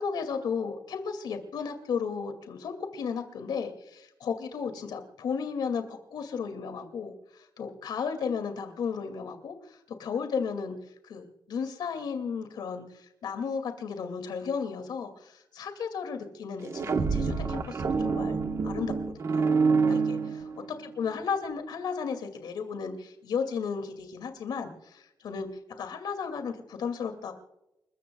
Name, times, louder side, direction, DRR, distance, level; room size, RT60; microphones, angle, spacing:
voice 1, 0.0-10.8 11.0-18.4 18.6-19.6 19.9-20.5 20.8-25.5 25.8-27.4, left 6 dB, 90° left, 7 dB, 2.4 m, -34 dB
sound 1, 16.6-20.9, right 4 dB, 45° right, 1.3 m, -27 dB
29.5 x 14.5 x 2.3 m, 0.87 s
wide cardioid pair, 155°, 7 cm